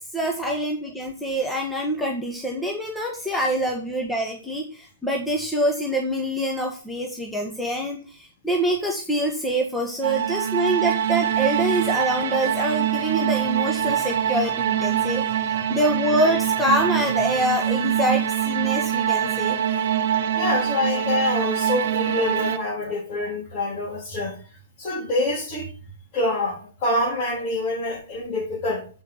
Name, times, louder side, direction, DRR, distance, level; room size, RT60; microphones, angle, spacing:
voice 1, 0.1-15.2 15.7-19.6, right 1 dB, 5° left, 1.7 m, -25 dB
sound 1, 10.0-22.6, right 10 dB, 55° right, 1.1 m, -24 dB
voice 2, 20.2-24.4 24.8-25.7 26.1-28.9, left 2 dB, 35° left, 3.7 m, -26 dB
8.1 x 5.6 x 5.9 m
hypercardioid pair, 130°, 0 cm